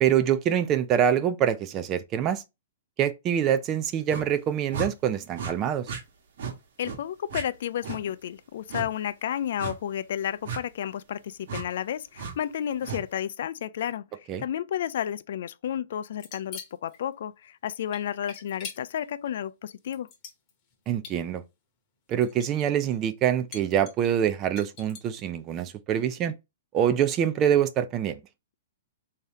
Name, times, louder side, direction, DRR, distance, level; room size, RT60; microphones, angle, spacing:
voice 1, 0.0-2.4 3.0-5.9 14.3-14.4 20.9-21.4 22.1-26.3 26.7-28.2, right 9 dB, 20° right, 0.4 m, -25 dB
sound 1, 4.1-4.3 4.7-4.9 5.3-5.5 5.8-6.0 6.4-6.5 6.8-7.0 7.3-7.4 7.8-8.0 8.7-8.9 9.6-9.8 10.4-10.6 11.5-11.6 12.2-12.3 12.8-13.0, right 5 dB, 55° right, 1.1 m, -34 dB
voice 2, 6.8-20.1, left 10 dB, 60° left, 0.3 m, -32 dB
sound 2, 16.1-17.0 17.9-19.0 19.8-20.7 21.0-21.2 22.1-22.7 22.9-23.0 23.5-25.2, left 6 dB, 25° left, 0.9 m, -43 dB
3.6 x 2.8 x 3.3 m
hypercardioid pair, 165°, 0 cm